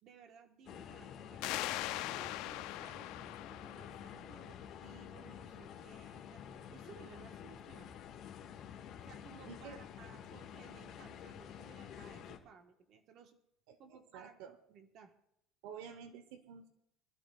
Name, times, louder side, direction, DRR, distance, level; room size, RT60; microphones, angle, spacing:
voice 1, 0.0-6.4 6.7-7.9 9.0-13.4 13.8-14.4 14.7-15.1, right 6 dB, 45° right, 5 dB, 1.4 m, -59 dB
sound 1, 0.7-12.4, left 8 dB, 40° left, 1.8 m, -50 dB
sound 2, 1.4-4.8, left 16 dB, 60° left, 0.5 m, -41 dB
voice 2, 9.5-9.8 13.7-14.6 15.6-16.7, right 7 dB, 75° right, 10 dB, 1.0 m, -50 dB
25.5 x 13.0 x 2.4 m, 0.79 s
cardioid pair, 165°, 0 cm